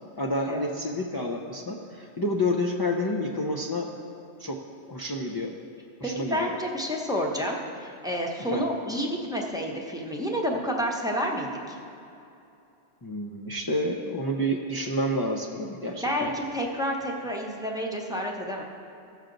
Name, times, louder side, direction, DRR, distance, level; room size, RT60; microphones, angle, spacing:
voice 1, 0.2-3.9 4.4-4.6 4.9-5.5 6.0-6.5 8.5-8.7 13.0-16.3, left 1 dB, 30° left, 0 dB, 0.4 m, -29 dB
voice 2, 6.0-11.8 15.9-18.6, equal, 5° right, -1 dB, 0.7 m, -30 dB
15.0 x 6.5 x 3.9 m, 2.8 s
omnidirectional pair, 1.2 m